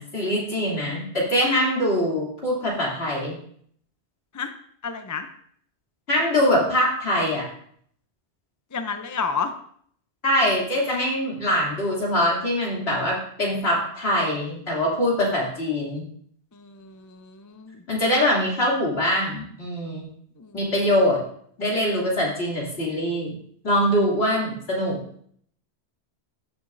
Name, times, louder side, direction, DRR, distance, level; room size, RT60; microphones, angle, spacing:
voice 1, 0.0-3.4 6.1-7.4 10.2-16.0 17.9-20.1 20.5-21.2 21.6-23.3 23.6-25.0, equal, 65° left, -4 dB, 3.1 m, -23 dB
voice 2, 4.8-5.3 8.7-9.5 16.5-17.8 20.4-20.6, left 5 dB, 25° left, 8 dB, 0.4 m, -31 dB
13.0 x 7.1 x 2.6 m, 0.62 s
omnidirectional pair, 1.2 m